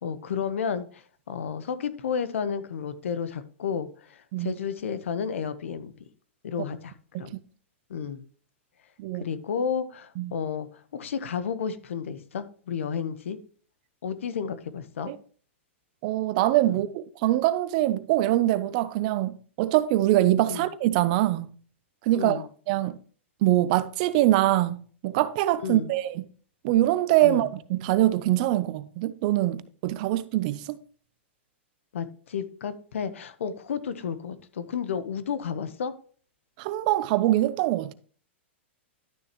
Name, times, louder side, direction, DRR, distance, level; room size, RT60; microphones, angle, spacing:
voice 1, 0.0-5.9 6.4-7.4 7.9-8.2 9.1-13.4 14.0-15.1 16.7-16.8 20.5-20.7 22.1-22.5 25.6-25.9 27.2-27.5 31.9-35.9, left 7 dB, 85° left, 1.1 m, -32 dB
voice 2, 16.0-21.5 22.0-23.0 23.4-26.2 26.6-30.8 36.6-37.9, right 15 dB, 40° right, 0.6 m, -24 dB
12.0 x 6.6 x 3.1 m
supercardioid pair, 160°, 7 cm